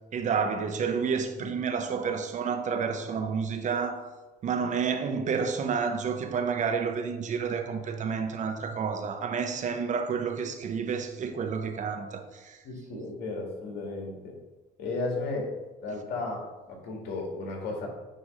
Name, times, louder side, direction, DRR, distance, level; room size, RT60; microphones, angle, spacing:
voice 1, 0.1-4.1 4.4-12.6 12.9-13.0, right 6 dB, 45° right, 0.9 m, -30 dB
voice 2, 12.6-14.4 14.8-15.5 15.8-17.9, left 3 dB, 80° left, 2.2 m, -34 dB
9.2 x 3.3 x 5.4 m
cardioid pair, 110°, 17 cm